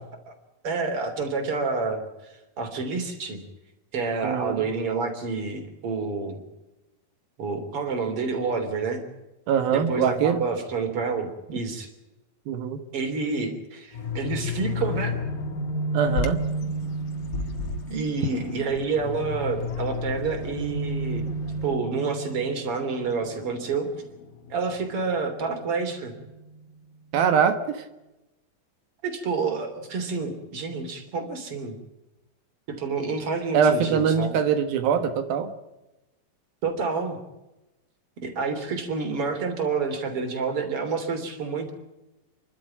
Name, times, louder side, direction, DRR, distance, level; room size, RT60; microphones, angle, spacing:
voice 1, 0.6-3.4 3.9-6.4 7.4-9.0 9.7-11.9 12.9-15.2 17.9-21.3 21.6-23.9 24.5-26.1 29.0-31.8 32.7-34.4 36.6-37.2 38.2-41.7, right 4 dB, 40° right, 6 dB, 4.0 m, -28 dB
voice 2, 4.2-4.6 9.5-10.4 12.5-12.8 15.9-16.4 27.1-27.8 33.5-35.5, right 7 dB, 85° right, 8 dB, 3.3 m, -23 dB
sound 1, 13.9-26.7, equal, 70° left, 3.0 m, -33 dB
Bird vocalization bird call bird song, 16.1-21.7, left 3 dB, 50° left, 2.1 m, -37 dB
29.5 x 12.0 x 8.9 m, 0.99 s
omnidirectional pair, 4.1 m